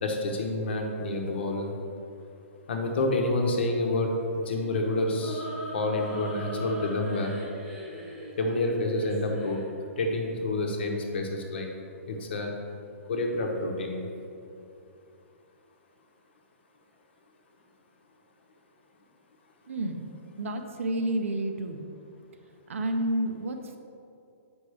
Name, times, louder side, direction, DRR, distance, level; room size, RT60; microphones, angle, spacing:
voice 1, 0.0-1.7 2.7-5.5 5.7-7.3 8.4-9.6 10.0-11.7 12.1-12.5 13.1-14.1, left 2 dB, 50° left, 2 dB, 0.9 m, -28 dB
sound 1, 4.4-9.7, equal, 5° right, 1.0 m, -40 dB
voice 2, 19.7-20.1 20.4-21.9 22.7-23.8, right 1 dB, 65° right, 6 dB, 0.7 m, -30 dB
7.9 x 5.3 x 3.4 m, 2.6 s
hypercardioid pair, 175°, 8 cm